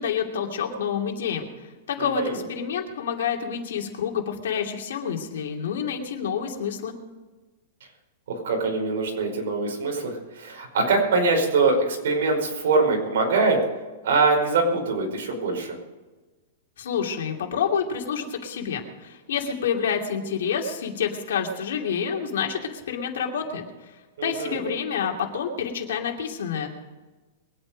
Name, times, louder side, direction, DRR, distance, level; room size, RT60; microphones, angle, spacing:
voice 1, 0.0-1.5 1.9-6.9 16.8-23.6 24.2-26.7, left 7 dB, 80° left, 2 dB, 2.7 m, -28 dB
voice 2, 2.0-2.4 8.3-13.6 14.0-15.8 24.2-24.7, right 3 dB, 70° right, 1 dB, 5.2 m, -23 dB
22.5 x 9.0 x 5.2 m, 1.2 s
supercardioid pair, 170°, 0 cm